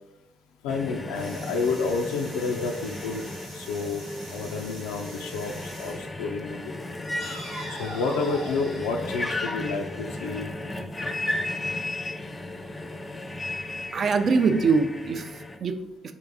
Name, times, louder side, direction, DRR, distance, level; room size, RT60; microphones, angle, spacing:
voice 1, 0.6-3.3 3.5-7.0 7.7-10.5, left 4 dB, 80° left, 2 dB, 0.3 m, -30 dB
sound 1, 0.7-15.6, left 2 dB, 20° left, 0.5 m, -35 dB
sound 2, 1.1-6.1 7.2-10.1, right 1 dB, 90° right, 1.1 m, -42 dB
voice 2, 13.9-16.1, right 4 dB, 50° right, 8 dB, 0.4 m, -24 dB
3.6 x 2.5 x 3.9 m, 0.91 s
hypercardioid pair, 50°, 0 cm